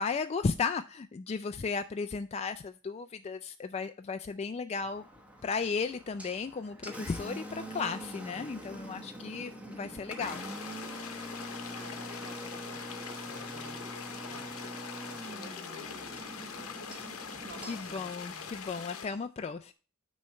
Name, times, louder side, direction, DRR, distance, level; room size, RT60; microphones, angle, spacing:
voice 1, 0.0-5.1 5.4-10.7 17.7-19.7, left 5 dB, 30° left, 8 dB, 0.3 m, -35 dB
Engine, 4.8-18.8, equal, 5° right, 1.0 m, -44 dB
sound 1, 10.2-19.1, left 6 dB, 75° left, 0.9 m, -43 dB
voice 2, 11.7-14.8 15.1-16.8 17.3-18.5, right 1 dB, 50° right, 2 dB, 2.6 m, -52 dB
9.4 x 3.2 x 5.6 m, 0.37 s
head